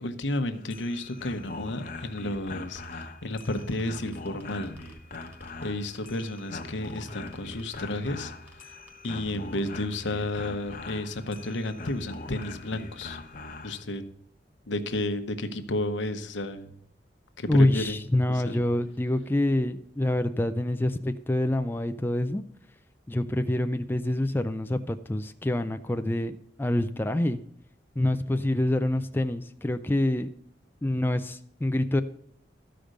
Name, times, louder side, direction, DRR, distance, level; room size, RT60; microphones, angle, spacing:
voice 1, 0.0-4.7 5.6-8.3 9.0-13.2 13.6-14.0 14.7-16.7 17.4-18.0 18.3-18.6, left 1 dB, 80° left, 9 dB, 0.9 m, -32 dB
sound 1, 0.5-13.8, left 2 dB, 50° left, 0.9 m, -42 dB
sound 2, 2.6-3.0 3.4-5.6 6.0-6.4 6.8-8.6 8.9-10.1 10.9-11.0 11.3-11.4 11.9-12.0 12.1-12.2 12.4-12.7, equal, 10° right, 1.5 m, -54 dB
voice 2, 17.5-22.4 23.1-27.4 28.0-30.3 30.8-32.0, left 1 dB, 10° left, 8 dB, 0.4 m, -26 dB
13.0 x 5.1 x 6.5 m, 0.72 s
head